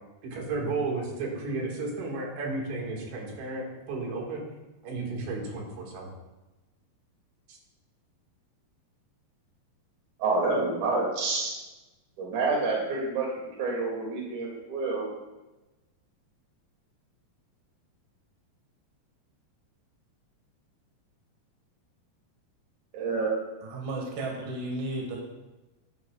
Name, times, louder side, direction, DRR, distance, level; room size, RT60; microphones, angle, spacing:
voice 1, 0.0-4.4 4.8-6.1 7.5-7.6, right 3 dB, 90° right, -1 dB, 4.2 m, -33 dB
voice 2, 10.2-11.5 12.2-13.3 13.6-15.0 22.9-23.3, right 3 dB, 50° right, -2 dB, 3.4 m, -28 dB
voice 3, 23.6-25.2, right 2 dB, 65° right, 0 dB, 3.3 m, -33 dB
11.5 x 11.0 x 2.4 m, 1.1 s
omnidirectional pair, 5.0 m